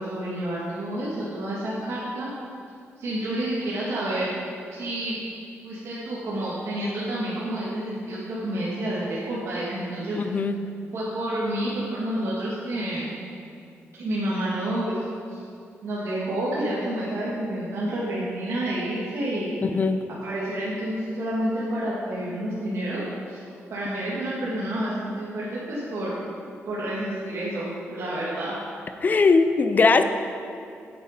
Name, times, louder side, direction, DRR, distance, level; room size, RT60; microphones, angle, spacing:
voice 1, 0.0-2.3 3.0-4.3 4.7-5.2 5.6-10.2 10.9-13.1 13.9-15.5 15.8-19.5 20.2-26.4 26.7-28.6, right 1 dB, 65° right, -8 dB, 1.9 m, -29 dB
voice 2, 10.2-10.7 19.6-20.0 29.0-30.0, left 4 dB, 35° left, 9 dB, 0.5 m, -20 dB
9.0 x 8.1 x 5.1 m, 2.4 s
cardioid pair, 100°, 5 cm